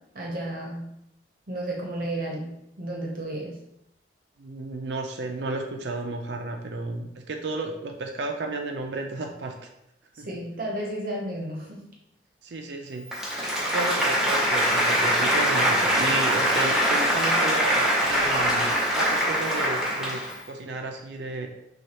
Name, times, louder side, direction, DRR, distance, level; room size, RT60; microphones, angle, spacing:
voice 1, 0.1-0.9 1.5-3.6 10.1-11.8, right 1 dB, 50° right, -1 dB, 0.8 m, -32 dB
voice 2, 4.4-9.7 10.2-10.3 12.4-13.1 13.4-21.5, right 2 dB, 70° right, 4 dB, 0.4 m, -33 dB
Applause, 13.0-20.4, equal, ahead, 0.8 m, -23 dB
6.3 x 2.3 x 2.9 m, 0.83 s
head